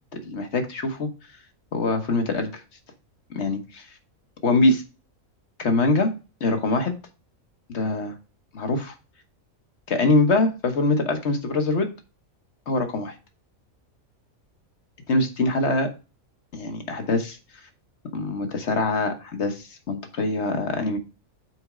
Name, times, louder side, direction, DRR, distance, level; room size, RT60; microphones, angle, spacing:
voice 1, 0.1-1.1 1.7-2.6 3.3-4.0 4.4-4.8 5.6-6.1 6.4-6.9 7.7-8.2 8.5-8.9 9.9-11.9 12.7-13.2 15.1-15.9 16.5-17.7 18.1-21.0, left 2 dB, 55° left, 6 dB, 1.4 m, -23 dB
6.3 x 4.4 x 4.8 m, 0.31 s
omnidirectional pair, 1.4 m